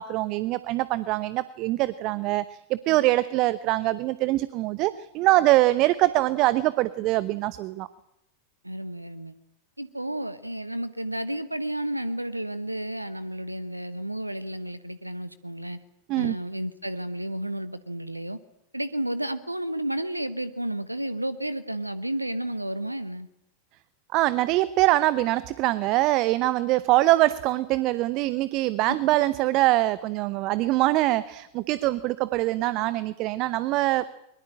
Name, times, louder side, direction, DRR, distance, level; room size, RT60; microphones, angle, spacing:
voice 1, 0.0-7.9 16.1-16.4 24.1-34.1, right 17 dB, 40° right, 16 dB, 0.8 m, -23 dB
voice 2, 8.6-9.3 9.8-15.8 16.2-18.4 18.7-23.3 28.9-29.0, right 1 dB, 85° right, 15 dB, 1.0 m, -32 dB
22.5 x 22.0 x 8.8 m, 0.84 s
figure-of-eight pair, 90°, 0 cm